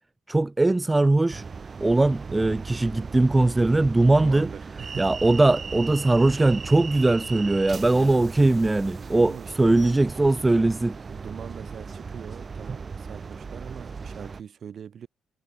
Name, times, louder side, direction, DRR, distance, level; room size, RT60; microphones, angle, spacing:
voice 1, 0.3-1.4 1.8-4.5 5.0-11.0, right 2 dB, 15° right, 0.5 m, -20 dB
sound 1, 1.3-14.4, right 5 dB, 35° right, 2.1 m, -37 dB
voice 2, 4.1-5.2 8.0-8.2 9.2-9.7 11.1-15.1, right 8 dB, 55° right, 6.7 m, -41 dB
cardioid pair, 90°, 0 cm